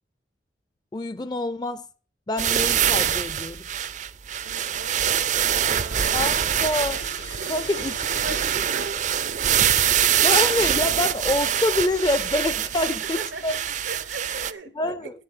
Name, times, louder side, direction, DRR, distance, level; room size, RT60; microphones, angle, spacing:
voice 1, 0.9-1.9 2.3-3.6 6.1-7.0 7.5-7.9 10.2-13.2 13.4-13.5 14.8-15.1, left 2 dB, 20° left, 0.4 m, -26 dB
sound 1, 2.4-14.5, right 9 dB, 40° right, 0.4 m, -24 dB
voice 2, 4.4-6.3 7.3-9.9 12.8-15.1, right 3 dB, 80° right, 1.0 m, -39 dB
Sink (filling or washing), 5.7-9.7, left 4 dB, 85° left, 1.1 m, -45 dB
8.0 x 7.6 x 8.5 m
head